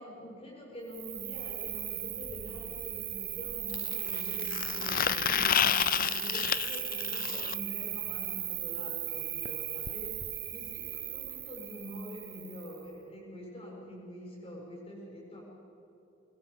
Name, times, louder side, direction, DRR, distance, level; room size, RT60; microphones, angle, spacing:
voice 1, 0.0-10.1 10.5-15.4, equal, 30° left, -2 dB, 7.1 m, -45 dB
Cricket, 0.9-12.8, right 13 dB, 65° right, 2.7 m, -37 dB
sound 1, 1.7-1.8 3.7-7.5 9.5-9.6 9.9-10.0 10.2-10.3 11.3-11.4, left 9 dB, 45° left, 0.5 m, -30 dB
24.5 x 21.0 x 7.1 m, 2.8 s
head